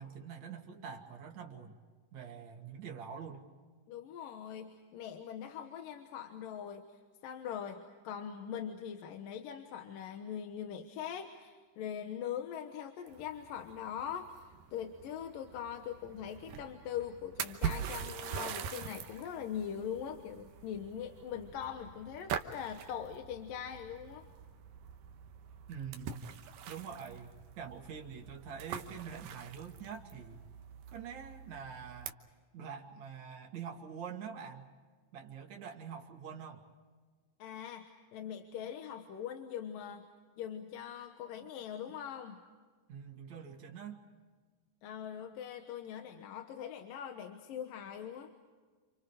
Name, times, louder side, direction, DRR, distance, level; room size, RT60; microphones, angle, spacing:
voice 1, 0.0-1.7 2.1-3.5 25.7-26.3 26.7-30.4 30.9-32.1 32.5-34.7 35.1-36.7 42.9-44.0, right 7 dB, 55° right, 1 dB, 3.5 m, -45 dB
voice 2, 3.9-24.3 37.4-40.1 40.4-42.4 44.8-48.3, left 9 dB, 75° left, 5 dB, 2.9 m, -42 dB
sound 1, 13.1-32.1, right 8 dB, 75° right, 2.8 m, -44 dB
29.5 x 28.5 x 5.0 m, 1.5 s
omnidirectional pair, 4.0 m